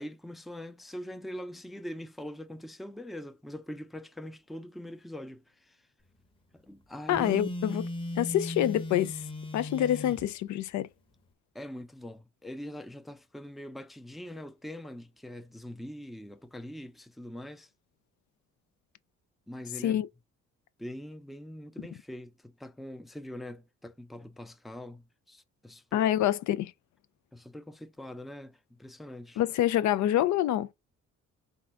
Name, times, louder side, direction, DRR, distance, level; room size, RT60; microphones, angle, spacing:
voice 1, 0.0-5.8 6.5-7.4 9.8-9.9 11.5-17.7 19.5-20.0 20.8-26.2 27.3-29.4, left 1 dB, ahead, 0.4 m, -43 dB
voice 2, 7.1-7.9 8.2-9.2 9.5-10.9 19.8-20.1 25.9-26.7 29.4-30.7, left 12 dB, 70° left, 0.5 m, -26 dB
Telephone, 7.1-10.3, left 1 dB, 15° left, 0.9 m, -37 dB
3.7 x 2.5 x 4.4 m
cardioid pair, 90°, 30 cm